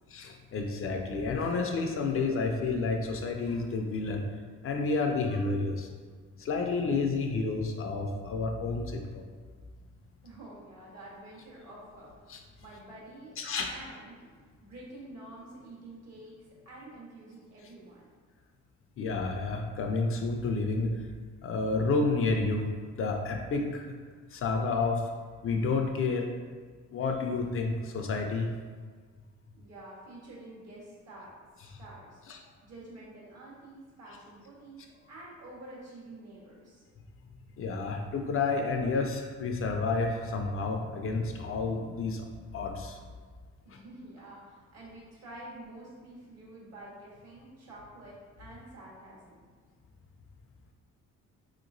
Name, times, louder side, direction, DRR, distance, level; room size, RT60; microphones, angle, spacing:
voice 1, 0.1-4.2 4.6-5.9 6.4-9.2 12.3-12.4 13.4-13.7 19.0-21.0 21.4-22.7 23.0-23.9 24.3-25.0 25.4-26.3 26.9-28.5 32.3-32.4 37.6-42.3 42.5-43.0 43.7-43.8, left 3 dB, 45° left, 3 dB, 0.4 m, -30 dB
voice 2, 10.2-13.4 13.6-14.2 14.6-18.0 29.5-36.8 43.6-49.4, right 1 dB, 60° right, -5 dB, 1.2 m, -48 dB
3.2 x 2.9 x 2.5 m, 1.5 s
cardioid pair, 90°, 30 cm